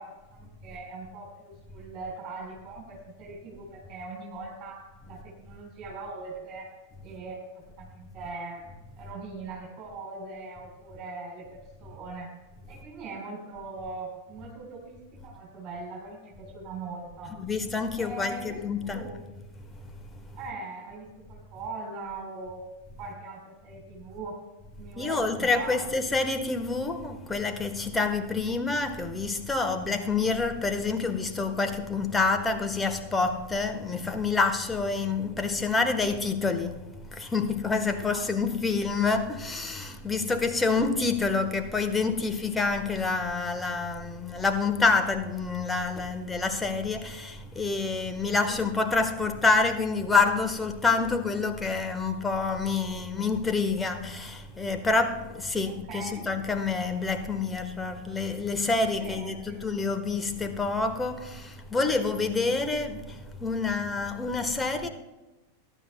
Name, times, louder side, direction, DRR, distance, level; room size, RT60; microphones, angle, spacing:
voice 1, 0.0-6.7 7.0-7.4 7.8-8.7 9.0-11.5 11.8-12.3 12.7-15.0 15.2-17.3 18.0-19.2 20.4-22.6 23.0-24.3 24.8-25.9 38.1-38.6 48.5-48.6 55.6-56.3 59.0-59.9, right 3 dB, 30° right, 3.9 m, -41 dB
voice 2, 17.2-19.3 19.7-20.4 24.9-64.9, left 4 dB, 10° left, 1.3 m, -27 dB
21.5 x 11.0 x 2.3 m
figure-of-eight pair, 90°, 0 cm